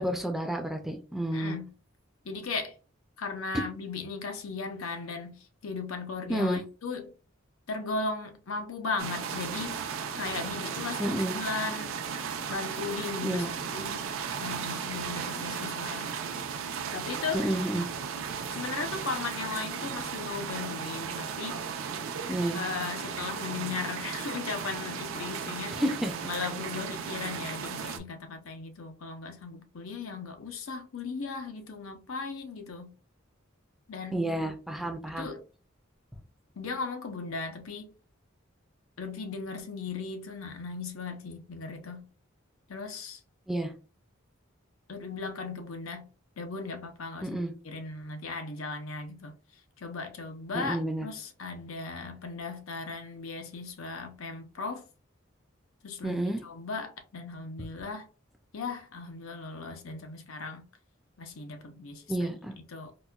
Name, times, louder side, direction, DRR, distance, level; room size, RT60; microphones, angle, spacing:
voice 1, 0.0-1.6 6.3-6.6 11.0-11.4 13.2-13.5 17.3-17.9 22.3-22.6 25.7-26.1 34.1-35.3 43.5-43.7 47.2-47.5 50.5-51.1 56.0-56.4 62.1-62.5, right 1 dB, ahead, 0.4 m, -30 dB
voice 2, 1.3-1.7 2.2-2.7 3.2-7.1 7.7-9.8 10.2-11.9 12.5-13.5 13.7-14.1 14.4-16.1 16.9-17.5 18.5-21.6 22.5-25.9 26.3-32.9 33.9-34.2 35.1-35.4 36.6-37.9 39.0-42.0 42.7-43.2 44.9-46.1 46.4-49.3 49.8-54.8 55.8-58.1 58.5-60.6 61.2-62.3 62.7-62.9, left 4 dB, 90° left, 0.6 m, -37 dB
sound 1, 9.0-28.0, right 6 dB, 75° right, 0.4 m, -35 dB
4.0 x 2.2 x 2.3 m
head